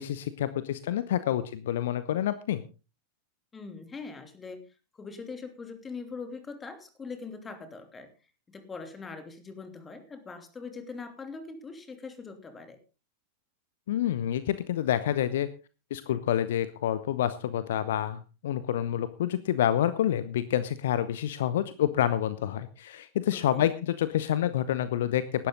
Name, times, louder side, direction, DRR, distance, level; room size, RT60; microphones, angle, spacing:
voice 1, 0.0-2.6 13.9-15.5 15.9-25.5, left 11 dB, 60° left, 14 dB, 0.9 m, -28 dB
voice 2, 3.5-4.6 4.9-8.1 8.5-12.8 23.3-23.7, left 4 dB, 15° left, 8 dB, 3.0 m, -42 dB
17.0 x 12.0 x 3.9 m, 0.33 s
figure-of-eight pair, 90°, 0 cm